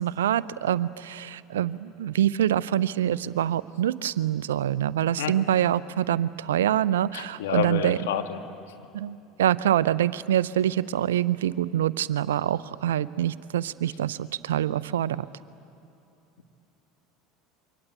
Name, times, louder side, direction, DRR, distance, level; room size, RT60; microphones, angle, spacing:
voice 1, 0.0-8.0 8.9-15.3, right 11 dB, 85° right, 17 dB, 0.6 m, -25 dB
voice 2, 7.1-8.4, left 10 dB, 80° left, 6 dB, 1.8 m, -29 dB
28.0 x 24.0 x 8.3 m, 2.7 s
hypercardioid pair, 80°, 0 cm